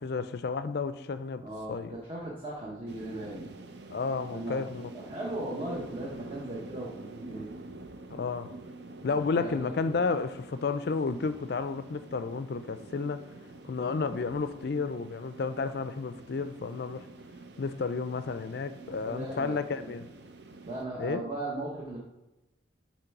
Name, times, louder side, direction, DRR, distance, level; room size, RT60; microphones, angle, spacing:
voice 1, 0.0-1.9 3.9-4.9 8.1-8.5 9.0-13.2 13.6-17.1 17.6-20.1 21.0-21.2, left 4 dB, 55° left, 0.4 m, -32 dB
voice 2, 1.4-3.5 4.3-7.5 9.1-10.0 18.8-19.9 20.7-22.0, right 1 dB, 30° right, 1.0 m, -38 dB
sound 1, 2.9-20.8, right 2 dB, 60° right, 0.5 m, -47 dB
6.8 x 3.1 x 5.9 m
head